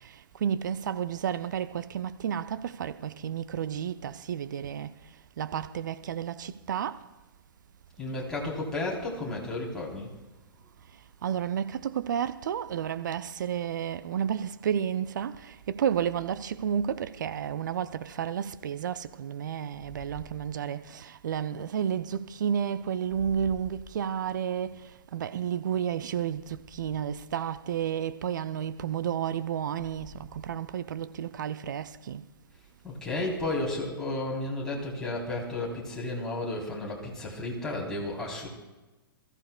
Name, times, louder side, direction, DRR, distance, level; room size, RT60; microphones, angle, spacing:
voice 1, 0.0-4.9 5.4-7.0 11.2-32.2, right 8 dB, 55° right, 0.6 m, -31 dB
voice 2, 8.0-10.1 32.8-38.5, left 2 dB, 5° left, 3.6 m, -33 dB
27.0 x 14.5 x 2.3 m
figure-of-eight pair, 110°, 12 cm